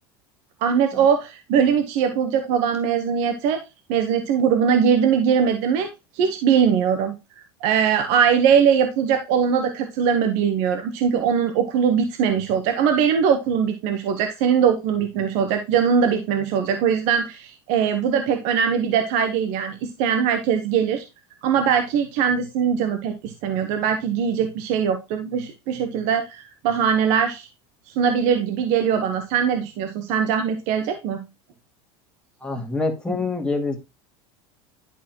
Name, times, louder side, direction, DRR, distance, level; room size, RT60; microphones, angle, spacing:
voice 1, 0.6-3.6 3.9-7.1 7.6-21.0 21.4-27.5 28.0-31.2, right 7 dB, 65° right, 6 dB, 1.1 m, -21 dB
voice 2, 32.4-33.8, left 3 dB, 5° left, 1 dB, 2.1 m, -26 dB
11.0 x 4.1 x 2.9 m, 0.25 s
supercardioid pair, 115°, 13 cm